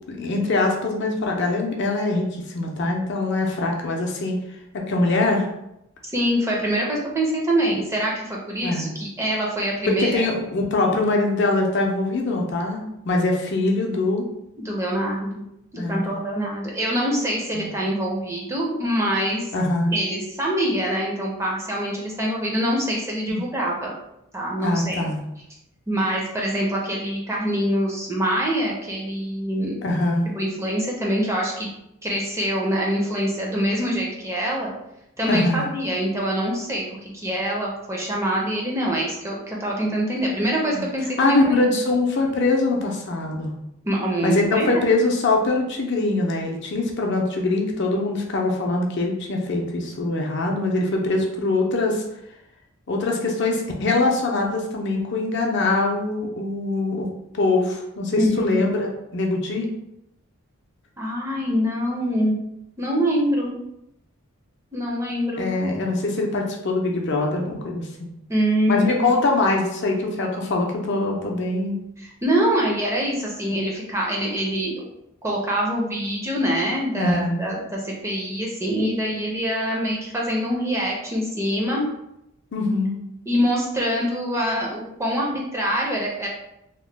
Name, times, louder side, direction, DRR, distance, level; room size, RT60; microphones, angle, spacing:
voice 1, 0.1-4.4 4.9-5.5 8.6-8.9 9.9-14.3 15.8-16.1 17.6-17.7 19.5-19.9 23.3-23.4 24.6-25.2 29.8-30.3 35.3-35.7 40.7-40.8 41.2-43.5 44.2-52.0 52.9-57.1 57.3-59.7 65.4-68.1 68.7-71.8 73.5-73.6 77.0-77.4 82.5-82.9, left 2 dB, 50° left, 0 dB, 0.5 m, -23 dB
voice 2, 6.1-10.2 14.6-15.4 15.7-19.5 19.9-23.9 24.3-25.1 25.9-29.8 30.3-31.7 32.0-34.7 35.2-41.6 43.8-44.7 58.2-58.6 61.0-62.4 62.8-63.6 64.7-65.5 68.3-69.2 72.0-74.9 75.2-81.9 83.3-86.3, equal, 15° right, -3 dB, 0.5 m, -24 dB
2.9 x 2.1 x 3.2 m, 0.83 s
head